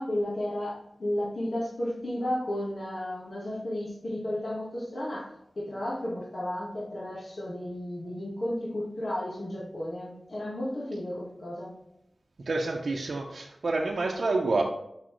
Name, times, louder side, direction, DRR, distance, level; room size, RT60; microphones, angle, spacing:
voice 1, 0.0-11.8, left 1 dB, 55° left, -6 dB, 1.5 m, -33 dB
voice 2, 12.5-14.6, right 3 dB, 80° right, -1 dB, 0.6 m, -28 dB
6.2 x 5.5 x 3.1 m, 0.82 s
wide cardioid pair, 95°, 0 cm